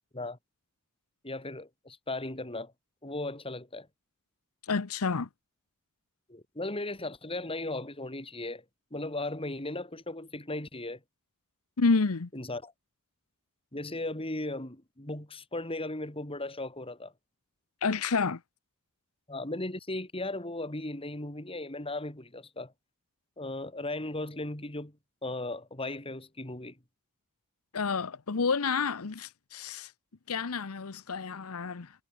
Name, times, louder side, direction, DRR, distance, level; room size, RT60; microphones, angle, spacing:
voice 1, 1.2-2.7 3.0-3.9 6.3-8.6 8.9-11.0 12.3-12.7 13.7-17.1 19.3-22.7 23.4-24.9 25.2-26.8, left 2 dB, 25° left, 4.5 m, -36 dB
voice 2, 4.6-5.3 11.8-12.3 17.8-18.4 27.7-29.9 30.3-31.9, left 4 dB, 85° left, 0.9 m, -29 dB
head